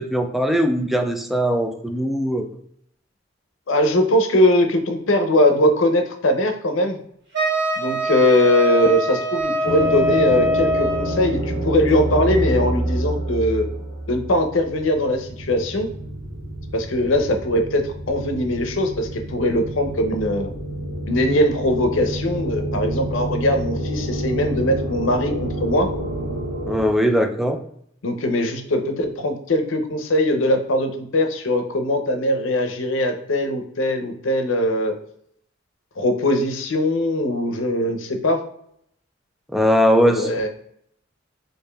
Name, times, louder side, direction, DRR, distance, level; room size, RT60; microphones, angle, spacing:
voice 1, 0.0-2.5 26.7-27.6 39.5-40.5, equal, ahead, 5 dB, 0.3 m, -20 dB
voice 2, 3.7-7.0 7.8-13.7 14.1-15.9 16.7-20.5 21.1-25.9 28.0-34.9 36.0-38.4 40.0-40.5, left 1 dB, 80° left, 5 dB, 0.6 m, -21 dB
Wind instrument woodwind instrument, 7.3-11.2, equal, 60° right, 1.1 m, -23 dB
sound 1, 9.6-26.9, right 1 dB, 90° right, 0.6 m, -28 dB
4.8 x 2.6 x 2.3 m, 0.69 s
head